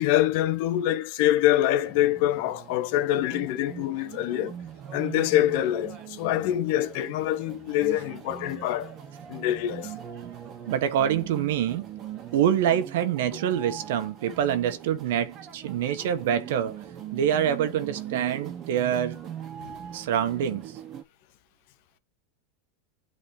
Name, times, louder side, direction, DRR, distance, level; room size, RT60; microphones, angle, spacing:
voice 1, 0.0-4.5 4.9-8.9 9.3-9.9 19.6-19.7, left 13 dB, 60° left, 1.1 m, -25 dB
sound 1, 1.8-21.0, right 9 dB, 35° right, 1.5 m, -41 dB
voice 2, 10.7-11.9 12.3-16.8 17.1-19.2 19.9-20.7, right 9 dB, 75° right, 1.3 m, -26 dB
8.5 x 4.0 x 3.2 m
supercardioid pair, 125°, 0 cm